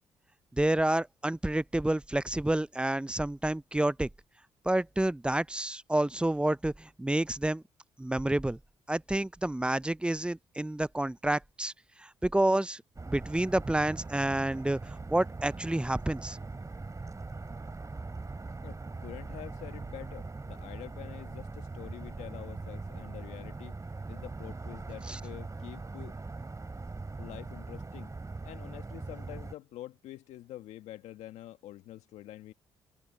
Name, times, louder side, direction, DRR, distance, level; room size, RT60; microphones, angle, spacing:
voice 1, 0.5-4.1 4.6-7.6 8.0-8.6 8.9-11.7 12.0-16.4 25.1-25.2, right 1 dB, 10° right, 0.5 m, -29 dB
sound 1, 13.0-29.5, right 3 dB, 25° right, 3.1 m, -41 dB
voice 2, 18.6-23.8 24.1-26.2 27.2-28.1 28.4-32.5, left 14 dB, 75° left, 1.5 m, -46 dB
hypercardioid pair, 45°, 12 cm